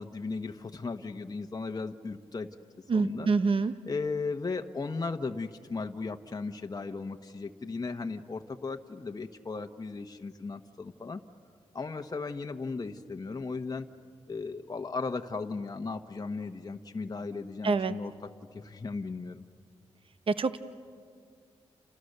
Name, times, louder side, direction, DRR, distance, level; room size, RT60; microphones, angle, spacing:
voice 1, 0.0-2.5 2.9-3.3 3.8-11.2 11.7-13.9 14.3-18.1 18.5-19.4, left 4 dB, 35° left, 4 dB, 1.2 m, -36 dB
voice 2, 2.9-3.7 17.6-17.9 20.3-20.6, right 4 dB, 50° right, 12 dB, 0.9 m, -26 dB
29.5 x 29.5 x 6.8 m, 2.1 s
cardioid pair, 60°, 11 cm